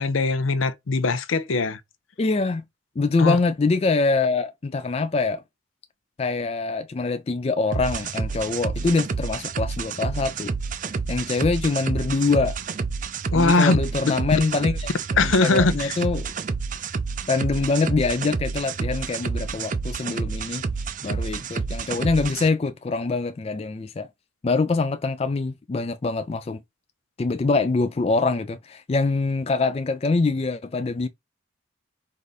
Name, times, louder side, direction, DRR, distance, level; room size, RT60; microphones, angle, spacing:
voice 1, 0.0-1.8 3.2-3.4 13.3-13.8 14.3-14.4 15.2-16.0, left 3 dB, 90° left, 0.6 m, -21 dB
voice 2, 2.2-2.6 3.0-5.4 6.2-10.5 11.1-12.6 13.3-14.9 15.2-16.3 17.3-20.6 21.0-24.1 24.4-26.6 27.2-31.1, left 3 dB, 30° left, 0.3 m, -24 dB
sound 1, 7.7-22.5, right 4 dB, 40° right, 0.4 m, -29 dB
4.8 x 2.7 x 4.0 m
head